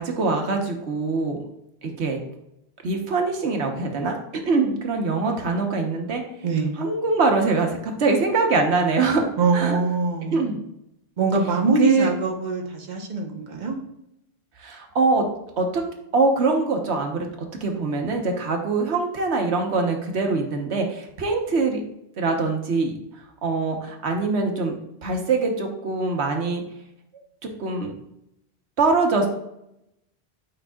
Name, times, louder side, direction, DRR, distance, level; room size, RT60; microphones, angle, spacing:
voice 1, 0.0-1.4 1.8-2.2 2.8-4.2 4.5-6.2 6.8-9.3 9.5-9.8 10.3-10.6 11.8-12.1 14.6-15.2 15.6-15.8 16.1-17.3 17.6-21.8 22.2-22.9 23.4-24.8 25.0-26.6 27.6-27.9 28.8-29.3, right 3 dB, 85° right, 3 dB, 1.3 m, -23 dB
voice 2, 9.4-10.4 11.2-13.8, right 3 dB, 45° right, 2 dB, 1.1 m, -23 dB
8.7 x 5.3 x 2.3 m, 0.80 s
omnidirectional pair, 1.1 m